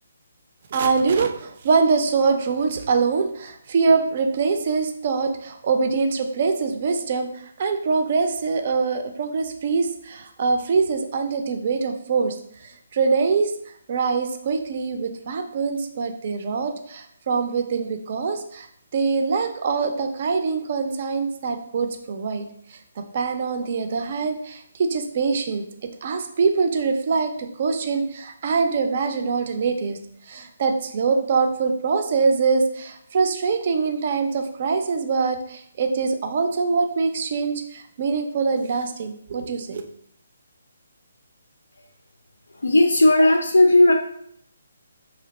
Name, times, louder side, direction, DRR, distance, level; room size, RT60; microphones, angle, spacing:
voice 1, 0.7-12.4 12.6-13.5 13.9-18.7 18.9-22.5 22.7-22.8 23.1-25.6 26.0-30.0 30.3-39.8, right 4 dB, 40° right, 6 dB, 0.4 m, -23 dB
voice 2, 42.5-43.9, left 1 dB, 70° left, 3 dB, 0.3 m, -15 dB
3.2 x 2.8 x 3.9 m, 0.69 s
figure-of-eight pair, 140°, 0 cm